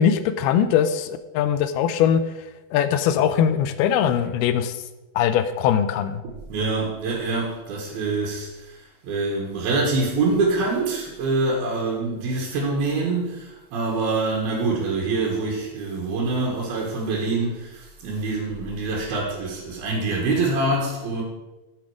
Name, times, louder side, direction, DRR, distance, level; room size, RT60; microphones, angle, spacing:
voice 1, 0.0-2.2 2.7-4.8 5.2-6.2, left 8 dB, 85° left, 11 dB, 2.6 m, -21 dB
voice 2, 6.2-21.2, right 3 dB, 75° right, -2 dB, 3.5 m, -25 dB
11.0 x 8.3 x 5.0 m, 1.1 s
omnidirectional pair, 4.4 m